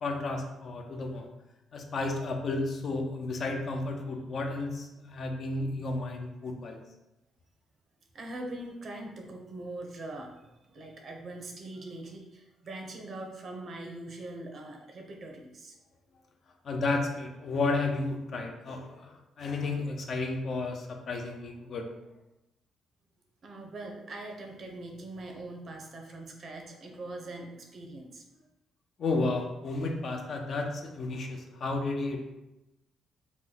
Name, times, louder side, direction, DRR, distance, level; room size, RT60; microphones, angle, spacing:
voice 1, 0.0-1.3 1.7-6.8 16.6-21.9 29.0-32.3, left 3 dB, 55° left, 3 dB, 0.5 m, -32 dB
voice 2, 8.1-15.8 23.4-28.4, right 2 dB, 55° right, 2 dB, 0.6 m, -42 dB
3.0 x 2.1 x 3.8 m, 0.96 s
cardioid pair, 90°, 0 cm